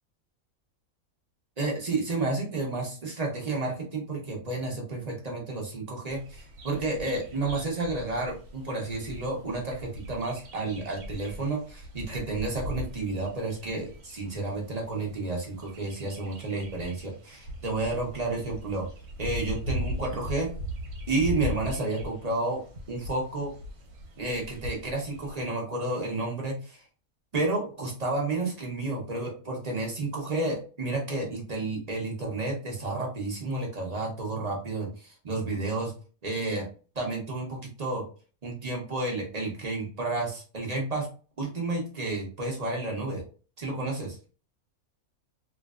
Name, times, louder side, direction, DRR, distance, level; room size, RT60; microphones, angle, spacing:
voice 1, 1.6-18.9 19.2-20.5 21.1-22.6 22.9-23.5 24.2-26.8 27.3-35.9 36.2-36.7 36.9-38.0 38.4-41.1 41.4-43.2 43.6-44.1, right 2 dB, 35° right, -1 dB, 0.8 m, -31 dB
Bird vocalization bird call bird song, 6.1-25.4, left 1 dB, 85° right, 1.3 m, -39 dB
3.1 x 2.5 x 2.4 m, 0.37 s
omnidirectional pair, 1.5 m